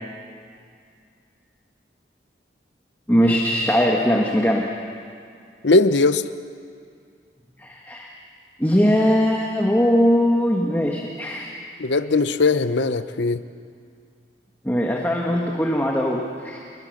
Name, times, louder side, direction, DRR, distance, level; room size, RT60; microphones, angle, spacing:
voice 1, 3.1-4.7 7.6-8.1 8.6-11.5 14.6-16.6, equal, 10° left, -1 dB, 1.6 m, -20 dB
voice 2, 5.6-6.2 11.8-13.4, left 3 dB, 80° left, 12 dB, 0.9 m, -19 dB
29.5 x 21.0 x 6.6 m, 2.3 s
head